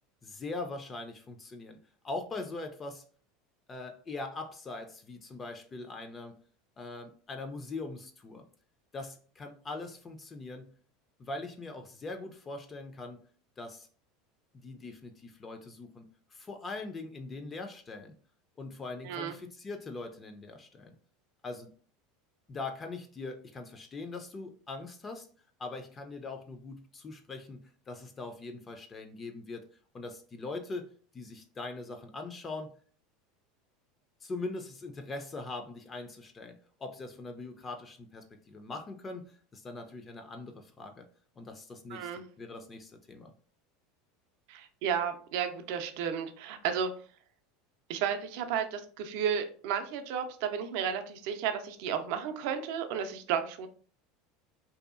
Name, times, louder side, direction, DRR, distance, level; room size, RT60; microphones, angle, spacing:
voice 1, 0.2-1.8 2.0-3.0 3.7-6.4 6.8-8.4 8.9-10.7 11.2-13.2 13.6-13.9 14.5-18.1 18.6-20.9 21.4-21.7 22.5-25.3 25.6-29.7 29.9-32.7 34.2-41.1 41.4-42.1 42.4-43.3, left 3 dB, 25° left, 5 dB, 0.3 m, -41 dB
voice 2, 19.0-19.3 41.9-42.2 44.5-46.9 47.9-53.7, right 8 dB, 65° right, 7 dB, 0.4 m, -33 dB
2.6 x 2.3 x 2.4 m, 0.43 s
supercardioid pair, 120°, 0 cm